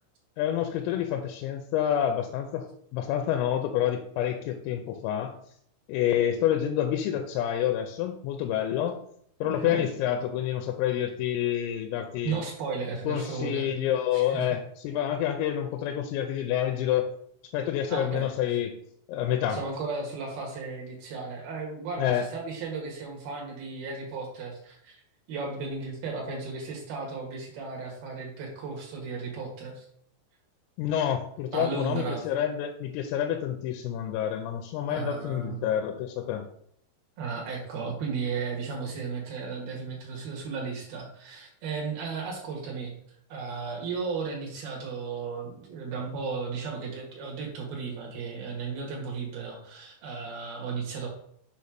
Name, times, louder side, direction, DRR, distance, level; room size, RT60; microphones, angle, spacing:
voice 1, 0.4-2.7 2.9-5.3 5.9-9.0 9.4-12.4 13.1-17.1 17.5-18.7 19.1-19.6 22.0-22.3 30.8-36.5, left 10 dB, 85° left, 4 dB, 3.3 m, -28 dB
voice 2, 9.4-9.8 12.2-13.7 14.1-14.6 17.9-18.3 19.5-25.0 25.3-29.9 31.5-32.2 34.9-35.6 37.2-42.9 43.3-51.1, right 4 dB, 65° right, -1 dB, 2.7 m, -35 dB
7.6 x 3.3 x 5.8 m, 0.67 s
omnidirectional pair, 5.9 m